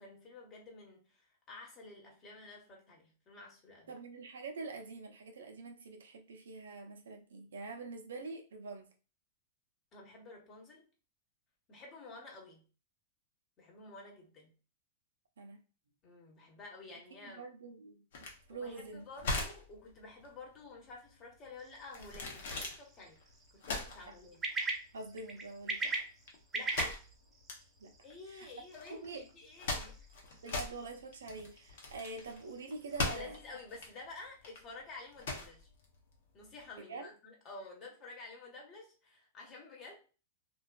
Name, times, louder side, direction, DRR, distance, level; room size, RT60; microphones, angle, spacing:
voice 1, 0.0-3.9 9.9-10.9 11.7-12.6 13.6-14.5 16.0-17.5 18.5-23.2 23.5-24.5 26.5-27.0 28.0-30.3 33.1-35.7 36.3-40.0, left 3 dB, 35° left, 1.0 m, -51 dB
voice 2, 3.9-8.9 15.4-15.6 17.2-18.0 18.5-19.3 24.1-24.2 24.9-26.0 27.8-27.9 28.3-28.5 28.9-29.2 30.4-33.4 36.9-37.1, right 3 dB, 90° right, 0.5 m, -45 dB
sound 1, 18.1-36.7, left 3 dB, 70° left, 0.8 m, -41 dB
sound 2, 21.6-33.2, right 3 dB, 20° right, 0.6 m, -43 dB
2.4 x 2.3 x 2.3 m
hypercardioid pair, 120°, 0 cm